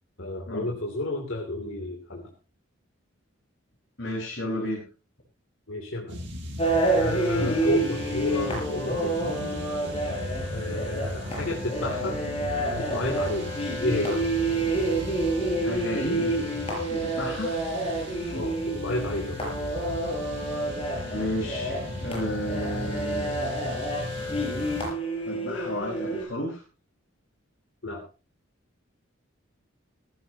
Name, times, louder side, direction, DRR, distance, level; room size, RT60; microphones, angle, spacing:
voice 1, 0.2-2.3 5.7-6.2 6.9-9.6 10.5-12.2 12.8-13.5 13.8-14.3 18.3-19.4 27.8-28.0, left 1 dB, 70° left, 0 dB, 2.9 m, -31 dB
voice 2, 4.0-4.8 15.6-16.5 16.9-17.6 21.1-23.6 25.2-26.6, left 1 dB, 55° left, -1 dB, 5.0 m, -32 dB
sound 1, 6.1-24.9, equal, 60° right, 6.8 m, -37 dB
sound 2, 6.6-26.2, right 1 dB, 30° left, 6.6 m, -29 dB
17.5 x 15.5 x 2.9 m, 0.32 s
head